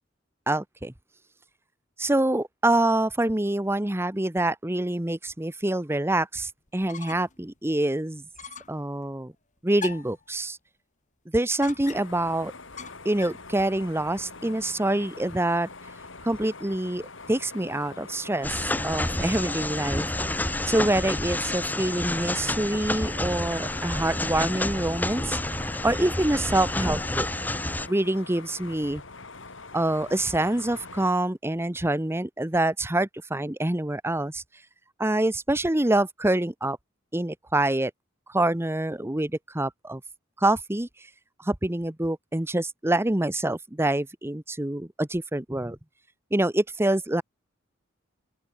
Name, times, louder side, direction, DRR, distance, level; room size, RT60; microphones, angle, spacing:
voice 1, 0.5-0.9 2.0-8.2 8.7-9.3 9.6-10.6 11.3-12.5 13.0-15.7 16.2-20.0 20.7-25.4 25.8-27.3 27.9-29.0 29.7-34.4 35.0-36.8 37.1-37.9 38.3-40.0 40.4-40.9 41.4-45.8 46.3-47.2, right 1 dB, 15° right, 1.0 m, -26 dB
sound 1, 6.7-7.4 7.7-7.8 8.4-8.8 9.8-10.2 11.6-12.2 12.8-13.5, left 6 dB, 40° left, 3.7 m, -41 dB
sound 2, 11.8-31.1, left 3 dB, 75° left, 4.7 m, -44 dB
sound 3, 18.4-27.9, left 1 dB, 10° left, 1.2 m, -29 dB
open air
head